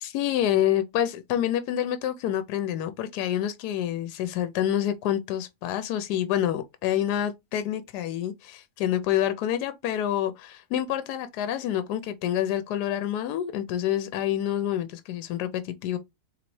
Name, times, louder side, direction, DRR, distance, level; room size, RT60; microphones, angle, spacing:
voice 1, 0.0-16.0, left 11 dB, 80° left, 1.1 m, -27 dB
3.9 x 3.3 x 3.0 m
omnidirectional pair, 1.7 m